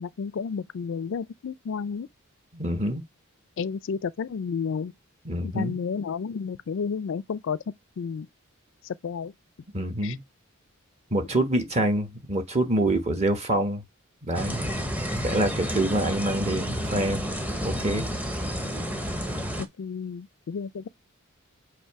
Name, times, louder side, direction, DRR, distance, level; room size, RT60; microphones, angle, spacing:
voice 1, 0.0-2.1 3.6-4.9 5.4-7.6 8.0-8.3 8.8-9.3 10.0-10.1 19.6-20.9, left 6 dB, 60° left, 0.4 m, -31 dB
voice 2, 2.5-3.0 5.2-5.8 9.7-10.2 11.1-13.8 14.2-14.6 15.2-17.2 17.6-18.0, right 1 dB, 30° right, 1.2 m, -26 dB
sound 1, 14.3-19.6, equal, 5° right, 0.8 m, -30 dB
8.0 x 2.7 x 4.7 m
head